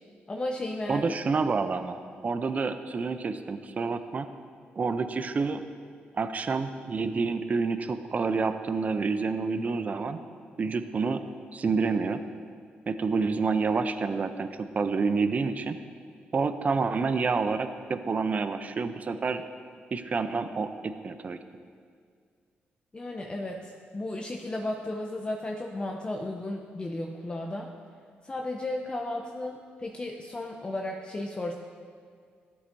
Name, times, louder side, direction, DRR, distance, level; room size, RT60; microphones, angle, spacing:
voice 1, 0.3-1.1 22.9-27.7 28.2-31.6, left 1 dB, 25° left, 2 dB, 0.6 m, -34 dB
voice 2, 0.9-4.3 4.8-5.6 6.1-10.2 10.6-11.2 11.5-12.2 12.9-15.8 16.3-19.4 19.9-21.4, right 4 dB, 40° right, 10 dB, 0.5 m, -28 dB
13.0 x 7.8 x 2.7 m, 2.1 s
cardioid pair, 75°, 4 cm